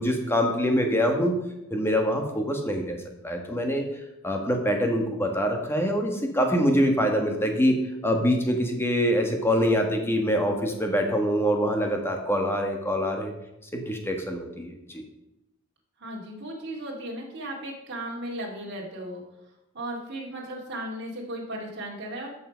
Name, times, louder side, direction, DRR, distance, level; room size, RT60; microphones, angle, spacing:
voice 1, 0.0-1.3 1.7-3.0 3.2-3.8 4.2-13.3 13.7-15.0, equal, 10° left, 3 dB, 1.4 m, -25 dB
voice 2, 16.0-19.2 19.7-22.3, right 1 dB, 50° right, -3 dB, 2.2 m, -36 dB
13.5 x 5.7 x 5.1 m, 0.91 s
head